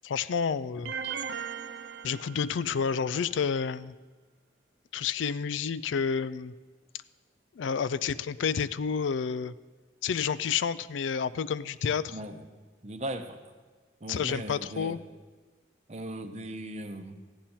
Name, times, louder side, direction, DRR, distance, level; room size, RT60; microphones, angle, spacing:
voice 1, 0.0-0.9 2.0-3.9 4.9-6.5 7.6-9.5 10.0-12.2 14.1-15.0, left 6 dB, 80° left, 16 dB, 0.4 m, -30 dB
sound 1, 0.9-3.0, right 7 dB, 70° right, 0.5 m, -38 dB
voice 2, 12.1-12.4 12.8-13.4 14.0-15.0 15.9-17.2, right 1 dB, 35° right, 8 dB, 0.7 m, -38 dB
14.5 x 10.0 x 4.3 m, 1.4 s
head